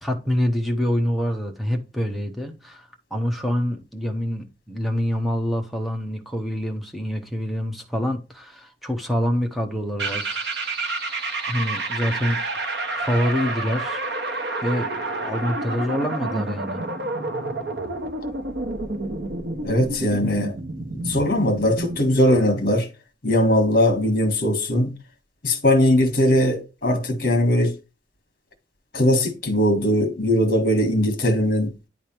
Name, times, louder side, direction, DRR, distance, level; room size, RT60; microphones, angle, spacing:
voice 1, 0.0-10.4 11.5-12.4 13.0-14.0 14.6-16.8, equal, ahead, 1.0 m, -26 dB
sound 1, 10.0-22.1, right 2 dB, 65° right, 1.2 m, -29 dB
voice 2, 19.6-20.6 20.9-22.9 23.2-24.9 25.4-27.7 28.9-31.7, left 1 dB, 50° left, 1.5 m, -20 dB
10.0 x 3.4 x 4.5 m
head